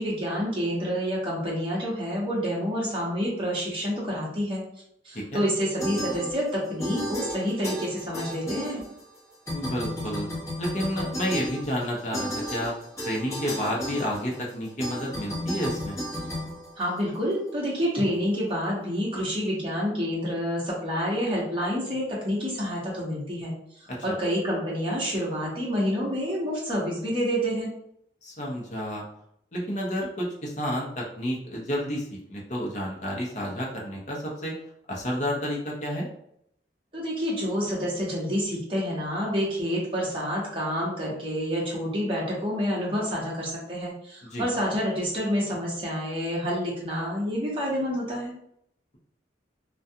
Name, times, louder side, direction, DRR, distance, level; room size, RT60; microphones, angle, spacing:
voice 1, 0.0-4.6 5.0-8.8 16.8-23.5 24.0-27.7 36.9-48.3, equal, 30° right, -5 dB, 0.8 m, -28 dB
sound 1, 5.8-6.5 6.8-9.2 9.5-17.3, equal, 15° left, 0.9 m, -34 dB
voice 2, 9.5-10.3 10.6-12.7 13.0-16.0 23.9-24.0 28.2-29.0 29.5-34.6 34.9-36.1 44.3-44.4, equal, 40° left, -3 dB, 0.6 m, -30 dB
2.3 x 2.3 x 2.7 m, 0.72 s
head